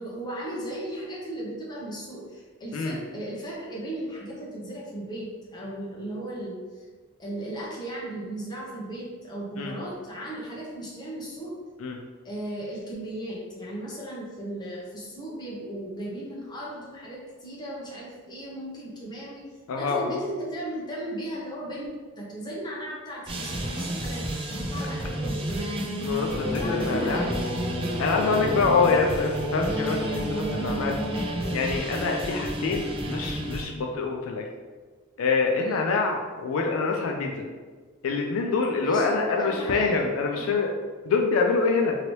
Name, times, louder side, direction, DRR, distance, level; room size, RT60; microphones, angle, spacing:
voice 1, 0.0-6.8 7.2-11.5 12.2-19.4 19.7-21.9 22.2-25.8 26.4-27.5 35.6-35.9 38.8-40.6, right 1 dB, 20° left, -5 dB, 0.8 m, -36 dB
voice 2, 19.7-20.0 26.0-27.3 28.0-31.3 31.5-34.4 35.2-37.4 38.0-40.7 41.1-42.0, left 4 dB, 70° left, 1 dB, 0.3 m, -25 dB
sound 1, 23.3-33.7, right 1 dB, 25° right, 0.4 m, -31 dB
sound 2, 26.3-31.8, left 1 dB, 50° right, 1.2 m, -32 dB
2.9 x 2.8 x 3.0 m, 1.5 s
head